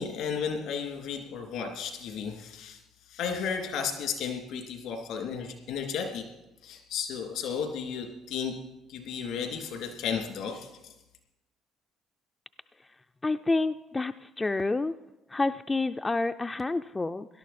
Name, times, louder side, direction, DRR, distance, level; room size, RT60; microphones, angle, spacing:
voice 1, 0.0-2.8 3.1-6.2 6.6-8.5 8.9-10.9, left 6 dB, 75° left, 3 dB, 2.7 m, -33 dB
voice 2, 13.2-14.9 15.3-17.3, left 3 dB, 20° left, 8 dB, 0.4 m, -28 dB
18.0 x 12.0 x 4.3 m, 0.98 s
supercardioid pair, 70°, 0 cm